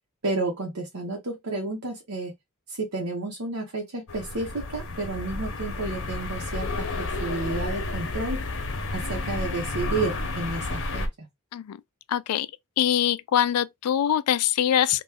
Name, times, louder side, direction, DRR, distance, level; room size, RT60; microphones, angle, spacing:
voice 1, 0.2-2.3 2.7-8.4 8.9-11.3, right 3 dB, 80° right, 1.0 m, -31 dB
sound 1, 4.1-11.1, left 2 dB, 65° left, 0.8 m, -31 dB
voice 2, 12.1-12.5 12.8-15.0, left 10 dB, 90° left, 0.3 m, -23 dB
3.0 x 2.2 x 3.5 m
head